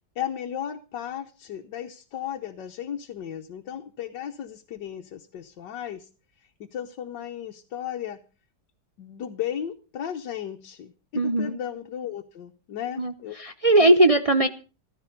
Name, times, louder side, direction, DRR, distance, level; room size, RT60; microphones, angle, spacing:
voice 1, 0.1-6.1 6.4-8.2 9.0-13.4 13.8-13.9, left 10 dB, 75° left, 4 dB, 1.6 m, -35 dB
voice 2, 11.1-11.6 13.0-13.1 13.4-14.5, right 1 dB, 65° right, 7 dB, 0.3 m, -19 dB
15.0 x 13.5 x 5.2 m, 0.35 s
omnidirectional pair, 2.0 m